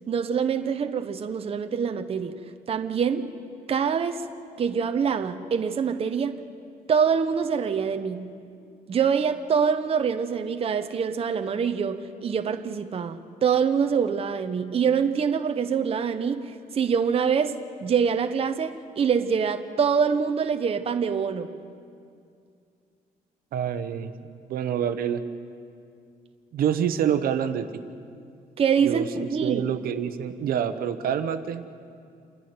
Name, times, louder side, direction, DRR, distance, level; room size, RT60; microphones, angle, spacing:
voice 1, 0.1-2.4 2.7-3.3 3.7-4.3 4.6-6.4 6.9-8.5 8.9-21.6 28.6-29.6, right 6 dB, 40° right, 0.8 m, -25 dB
voice 2, 23.5-24.1 24.5-25.2 26.5-27.7 28.8-31.6, right 9 dB, 75° right, 1.0 m, -27 dB
28.0 x 11.0 x 9.5 m
cardioid pair, 125°, 15 cm